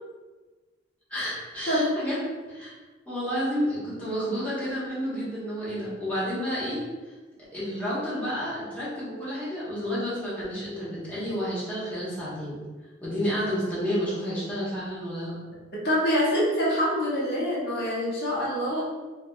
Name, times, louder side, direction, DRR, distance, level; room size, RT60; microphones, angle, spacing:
voice 1, 1.1-2.2 2.5-2.7 3.1-7.1 7.5-12.6 13.0-15.3, equal, 10° left, -11 dB, 1.1 m, -30 dB
voice 2, 15.7-18.8, equal, 55° left, -7 dB, 0.9 m, -25 dB
4.5 x 2.4 x 2.2 m, 1.3 s
head